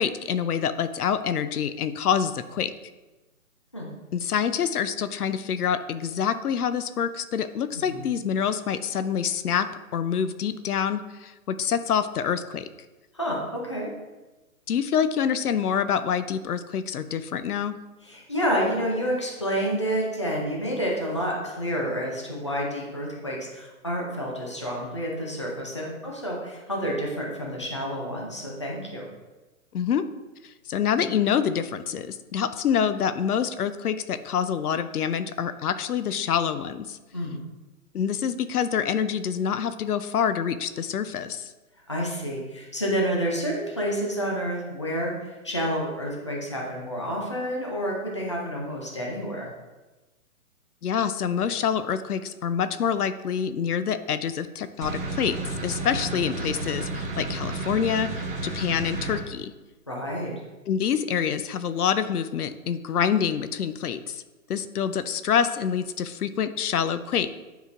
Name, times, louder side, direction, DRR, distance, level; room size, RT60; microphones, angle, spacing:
voice 1, 0.0-2.7 4.1-12.7 14.7-17.8 29.7-30.0 30.4-37.0 37.9-41.5 50.8-59.5 60.7-64.2 64.5-67.4, left 8 dB, 85° left, 12 dB, 0.6 m, -26 dB
voice 2, 7.7-8.1 13.1-13.9 18.0-29.1 37.1-37.4 41.9-49.5 59.9-60.3, equal, 20° left, -2 dB, 0.5 m, -29 dB
sound 1, 54.8-59.2, right 2 dB, 40° right, 1.5 m, -32 dB
9.2 x 4.9 x 2.5 m, 1.1 s
hypercardioid pair, 170°, 44 cm